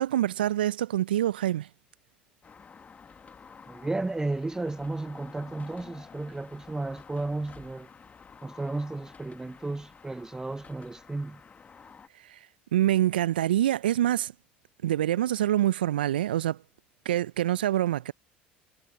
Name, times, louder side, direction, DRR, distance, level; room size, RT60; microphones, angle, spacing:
voice 1, 0.0-1.7 12.3-12.4 12.7-14.3 14.8-16.6 17.0-18.1, right 12 dB, 80° right, 0.6 m, -25 dB
sound 1, 2.4-12.1, left 5 dB, 30° left, 1.7 m, -50 dB
voice 2, 3.7-7.9 8.4-11.4, right 2 dB, 10° right, 0.7 m, -33 dB
figure-of-eight pair, 65°, 5 cm